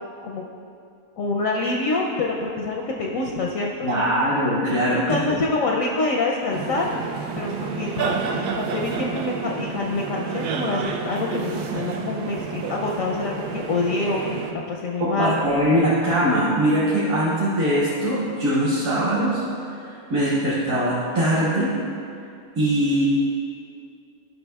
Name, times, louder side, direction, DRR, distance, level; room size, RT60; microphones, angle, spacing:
voice 1, 1.2-4.1 4.9-6.9 7.4-15.4, left 3 dB, 70° left, 0 dB, 0.8 m, -26 dB
voice 2, 3.8-5.4 15.0-21.7 22.6-23.0, right 1 dB, 55° right, -12 dB, 1.8 m, -22 dB
sound 1, 6.5-14.5, right 5 dB, 75° right, 1.0 m, -30 dB
12.0 x 5.7 x 2.3 m, 2.5 s
omnidirectional pair, 1.8 m